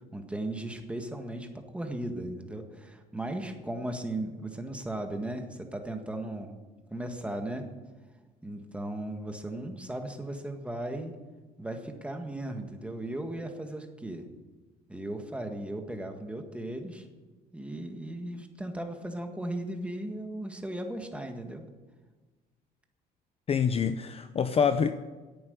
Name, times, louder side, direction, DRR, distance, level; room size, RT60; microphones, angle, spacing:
voice 1, 0.1-6.6 6.9-7.7 8.4-11.2 11.6-14.3 14.9-17.1 17.5-21.7, right 1 dB, 5° right, 5 dB, 1.7 m, -36 dB
voice 2, 23.5-24.9, left 6 dB, 35° left, 10 dB, 0.6 m, -26 dB
10.5 x 8.8 x 9.4 m, 1.3 s
cardioid pair, 110°, 17 cm